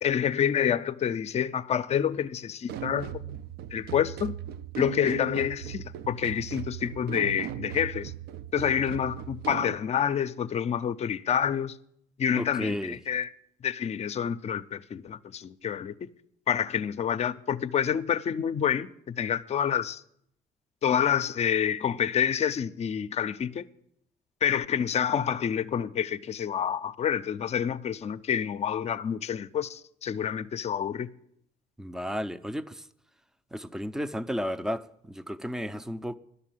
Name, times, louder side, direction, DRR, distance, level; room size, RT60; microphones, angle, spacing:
voice 1, 0.0-3.3 3.7-4.4 4.8-8.1 8.5-11.8 12.2-13.3 13.6-16.1 16.5-20.0 20.8-23.6 24.4-31.1, left 8 dB, 40° left, 0.6 m, -28 dB
sound 1, 2.7-9.7, right 11 dB, 70° right, 0.5 m, -38 dB
voice 2, 12.3-13.0 31.8-32.9 33.5-36.2, equal, 5° right, 0.5 m, -33 dB
11.0 x 6.9 x 9.1 m
cardioid pair, 110°, 17 cm